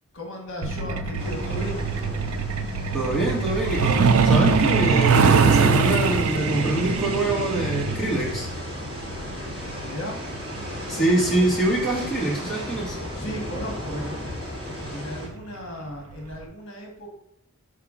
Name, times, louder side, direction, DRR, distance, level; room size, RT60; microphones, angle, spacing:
voice 1, 0.1-1.9 9.8-10.2 13.1-14.3 14.9-17.2, equal, 60° left, 1 dB, 1.3 m, -35 dB
Truck, 0.6-12.9 14.1-14.3 14.7-14.9 15.3-15.5 15.9-16.0 16.4-16.5, right 5 dB, 75° right, 0.5 m, -23 dB
sound 1, 1.2-15.3, left 1 dB, 20° right, 1.7 m, -35 dB
voice 2, 2.9-8.5 10.9-13.0, right 2 dB, ahead, -7 dB, 1.5 m, -24 dB
5.6 x 4.8 x 3.7 m, 0.71 s
head